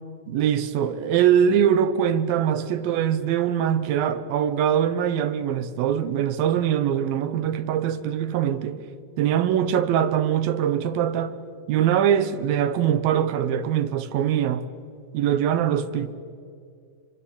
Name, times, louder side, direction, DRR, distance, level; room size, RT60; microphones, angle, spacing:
voice 1, 0.3-8.8 9.2-11.4 11.7-14.7 15.1-16.1, right 9 dB, 75° right, 2.8 m, -22 dB
27.0 x 25.0 x 8.8 m
omnidirectional pair, 4.4 m